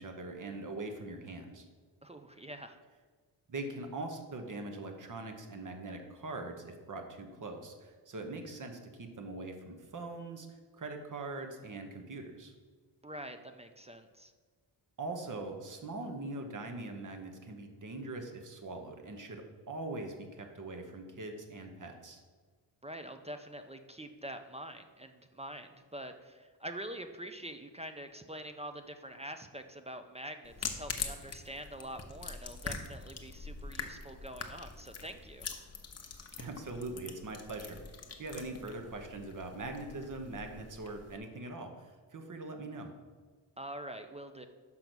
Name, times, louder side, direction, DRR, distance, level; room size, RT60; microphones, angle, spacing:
voice 1, 0.0-1.6 3.5-10.5 10.7-12.5 15.0-22.2 36.4-37.8 38.2-42.9, right 2 dB, 40° right, 5 dB, 1.1 m, -42 dB
voice 2, 2.0-2.8 13.0-14.3 22.8-35.5 43.6-44.5, right 1 dB, 15° right, 7 dB, 0.4 m, -45 dB
sound 1, 30.4-41.2, left 5 dB, 35° left, 0.8 m, -44 dB
5.9 x 5.2 x 6.1 m, 1.4 s
cardioid pair, 105°, 45 cm